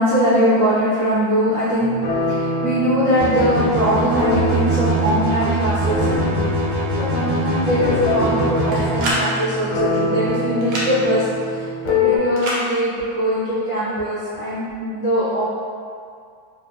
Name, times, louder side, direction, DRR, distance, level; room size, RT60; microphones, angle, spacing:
voice 1, 0.0-1.9 2.3-6.1 6.9-15.4, equal, 70° left, -13 dB, 1.4 m, -21 dB
sound 1, 1.8-12.2, left 1 dB, 90° left, 1.4 m, -24 dB
sound 2, 3.2-9.1, right 1 dB, 55° right, 1.3 m, -24 dB
sound 3, 8.7-9.2 10.6-10.9 12.4-12.6, equal, 80° right, 0.7 m, -24 dB
3.4 x 2.2 x 2.4 m, 2.2 s
omnidirectional pair, 2.2 m